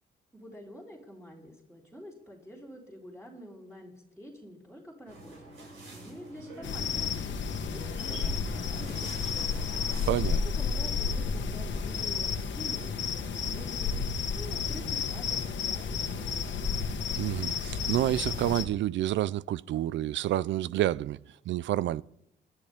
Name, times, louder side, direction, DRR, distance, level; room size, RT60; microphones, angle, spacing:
voice 1, 0.3-5.4 5.9-9.5 10.3-13.9 14.3-16.7, equal, 5° right, 3.4 m, -47 dB
sound 1, 5.1-10.3, right 2 dB, 85° right, 7.3 m, -46 dB
sound 2, 6.6-18.6, left 5 dB, 70° left, 1.6 m, -31 dB
voice 2, 10.1-10.4 17.1-21.2 21.5-22.0, right 13 dB, 70° right, 0.5 m, -29 dB
20.5 x 11.5 x 3.6 m
cardioid pair, 90°, 20 cm